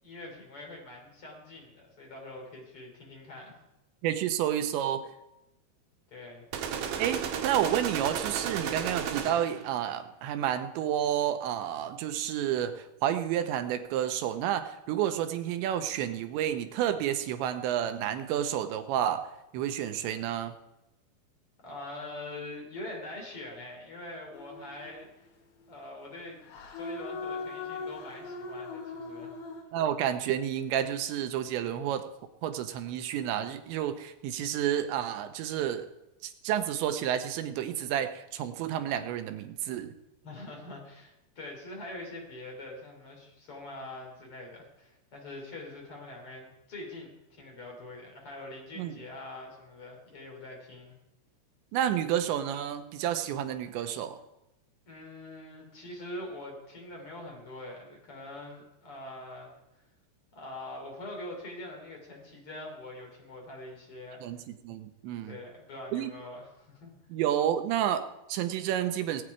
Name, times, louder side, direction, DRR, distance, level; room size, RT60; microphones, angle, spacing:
voice 1, 0.0-3.6 6.1-6.4 21.6-25.1 25.7-26.4 26.7-29.4 40.2-51.0 54.9-59.5 60.3-64.2 65.2-66.9, left 1 dB, 35° left, 0 dB, 3.6 m, -44 dB
voice 2, 4.0-5.1 7.0-20.5 29.7-32.1 32.4-35.9 36.2-39.9 48.8-48.9 51.7-54.2 64.2-65.4 65.9-66.1 67.1-69.2, right 10 dB, 90° right, 9 dB, 3.1 m, -30 dB
sound 1, 6.5-9.7, right 7 dB, 70° right, 2.6 m, -33 dB
sound 2, 24.3-25.0 26.5-29.6, left 3 dB, 85° left, 4.1 m, -39 dB
19.5 x 8.8 x 4.8 m, 0.91 s
omnidirectional pair, 5.2 m